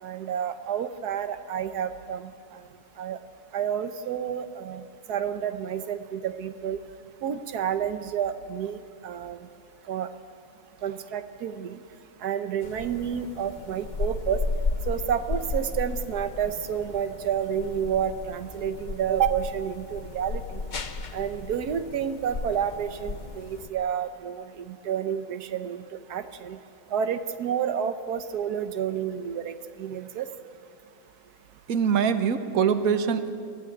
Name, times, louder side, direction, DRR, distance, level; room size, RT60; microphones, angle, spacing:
voice 1, 0.0-2.6 3.0-3.2 3.5-4.8 5.1-6.8 7.2-9.4 9.9-10.1 10.8-11.8 12.2-14.4 14.9-20.6 21.1-26.6 26.9-30.3, right 8 dB, 90° right, 9 dB, 1.4 m, -30 dB
sound 1, 12.6-23.7, left 3 dB, 35° left, 0.9 m, -34 dB
voice 2, 31.7-33.3, right 7 dB, 70° right, 10 dB, 1.4 m, -23 dB
24.5 x 15.5 x 9.3 m, 2.4 s
omnidirectional pair, 1.6 m